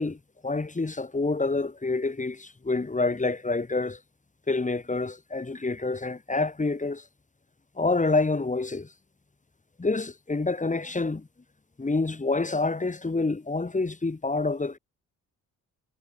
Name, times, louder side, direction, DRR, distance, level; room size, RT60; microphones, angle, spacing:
voice 1, 0.0-4.0 4.5-7.0 7.8-8.9 9.8-11.3 11.8-14.8, left 3 dB, 20° left, 2.9 m, -27 dB
cardioid pair, 80°, 34 cm